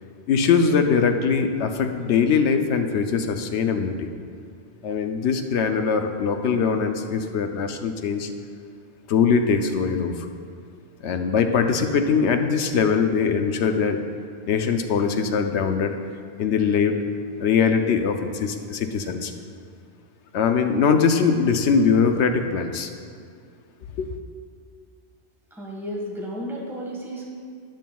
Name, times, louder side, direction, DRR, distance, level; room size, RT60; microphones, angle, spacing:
voice 1, 0.3-4.1 4.8-8.3 9.1-10.2 11.0-14.0 14.5-15.9 16.4-17.0 17.4-19.3 20.3-22.9 24.0-24.1, left 6 dB, 80° left, 6 dB, 0.9 m, -21 dB
voice 2, 25.5-27.2, equal, ahead, -3 dB, 1.5 m, -33 dB
13.0 x 9.1 x 2.3 m, 2.2 s
omnidirectional pair, 1.1 m